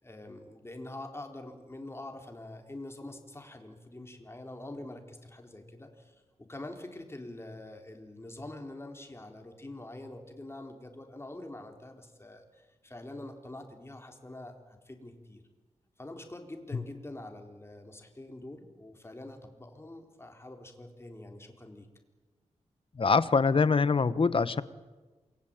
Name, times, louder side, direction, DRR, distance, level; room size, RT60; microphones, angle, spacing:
voice 1, 0.0-15.4 16.0-21.9, left 1 dB, 20° left, 4 dB, 4.2 m, -45 dB
voice 2, 23.0-24.6, left 4 dB, 45° left, 15 dB, 1.2 m, -24 dB
28.5 x 22.5 x 9.0 m, 1.3 s
wide cardioid pair, 105°, 12 cm